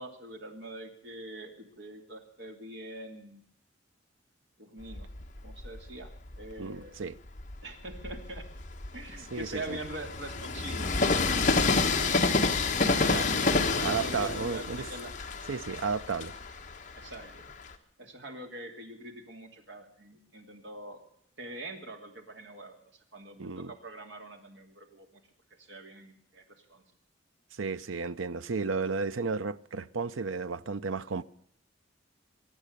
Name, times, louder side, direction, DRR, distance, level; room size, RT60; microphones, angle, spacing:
voice 1, 0.0-3.4 4.6-5.1 5.4-6.1 6.4-7.0 7.6-8.4 8.9-13.3 13.7-15.1 16.9-17.5 18.0-21.0 21.4-25.2 25.5-26.8, right 1 dB, 65° right, 2.8 m, -44 dB
Train, 4.9-6.5 7.1-17.7, left 3 dB, 40° left, 1.5 m, -29 dB
voice 2, 6.6-7.2 9.3-9.8 13.1-13.3 13.8-14.9 15.5-16.3 23.4-23.7 27.5-31.2, right 4 dB, 85° right, 0.7 m, -33 dB
23.5 x 8.7 x 6.7 m
head